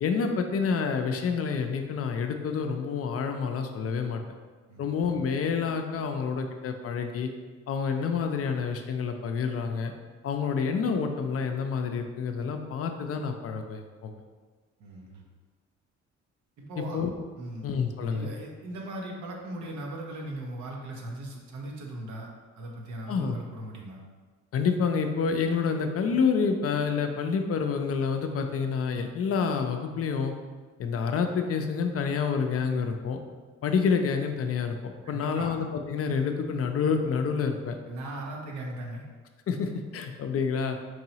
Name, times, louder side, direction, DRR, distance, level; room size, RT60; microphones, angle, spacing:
voice 1, 0.0-4.2 4.8-7.3 7.7-9.9 10.2-14.1 16.8-17.1 17.6-18.3 23.1-23.3 24.5-30.3 30.8-33.2 33.6-37.8 39.5-40.8, left 5 dB, 50° left, 5 dB, 0.5 m, -28 dB
voice 2, 14.8-15.2 16.6-17.0 17.4-17.7 18.1-22.3 22.6-24.0 35.0-35.5 37.9-39.1, right 1 dB, 75° right, 0 dB, 0.9 m, -38 dB
4.7 x 2.9 x 2.8 m, 1.4 s
cardioid pair, 90°, 30 cm